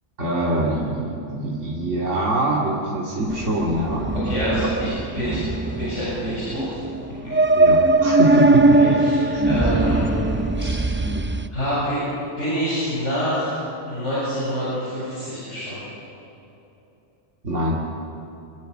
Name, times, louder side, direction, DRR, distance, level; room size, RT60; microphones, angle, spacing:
voice 1, 0.2-4.1 7.5-9.0 9.3-9.5 11.0-11.2 17.4-17.8, right 1 dB, 80° right, -5 dB, 3.0 m, -24 dB
sound 1, 3.3-11.5, right 2 dB, 20° right, 0.3 m, -20 dB
voice 2, 4.1-4.9 5.1-5.4 5.8-6.7 8.8-10.5 11.5-12.0 12.4-15.8, equal, 80° left, -9 dB, 7.8 m, -26 dB
28.0 x 22.5 x 6.7 m, 2.9 s
omnidirectional pair, 1.2 m